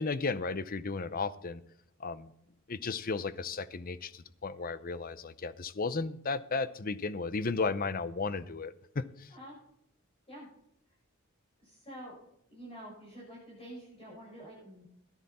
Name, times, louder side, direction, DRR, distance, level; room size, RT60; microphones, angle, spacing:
voice 1, 0.0-1.6 2.0-2.3 2.7-9.3, left 4 dB, 45° left, 16 dB, 0.6 m, -34 dB
voice 2, 11.6-12.2 12.5-14.8, equal, 30° left, -6 dB, 5.6 m, -48 dB
14.0 x 11.0 x 4.2 m, 0.75 s
head